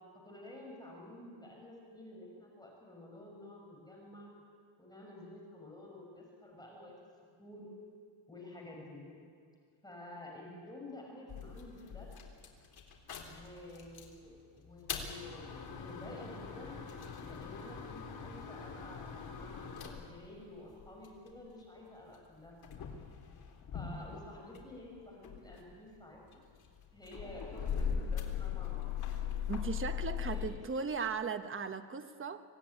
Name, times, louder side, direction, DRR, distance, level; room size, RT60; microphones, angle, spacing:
voice 1, 0.2-4.3 4.8-6.9 7.4-7.7 8.3-9.1 9.8-12.1 13.3-16.9 17.2-19.7 20.0-22.9 23.7-26.4 26.9-29.0 30.1-30.6, left 1 dB, 10° left, -2 dB, 6.0 m, -50 dB
sound 1, 11.3-14.2 14.6-21.4 22.1-24.8 25.1-30.5, left 7 dB, 50° left, 3.7 m, -40 dB
voice 2, 29.5-32.4, right 5 dB, 25° right, 9 dB, 1.2 m, -37 dB
25.5 x 17.5 x 9.9 m, 2.2 s
cardioid pair, 125°, 48 cm